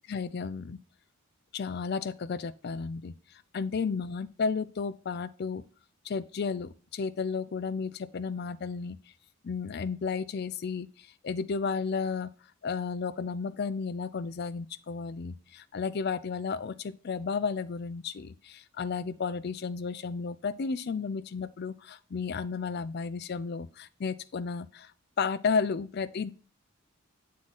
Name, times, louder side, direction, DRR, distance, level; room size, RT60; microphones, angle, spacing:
voice 1, 0.1-0.8 1.5-5.6 6.0-9.0 9.4-12.3 12.6-24.9 25.2-26.3, left 5 dB, 45° left, 0.4 m, -33 dB
7.5 x 3.7 x 4.0 m
head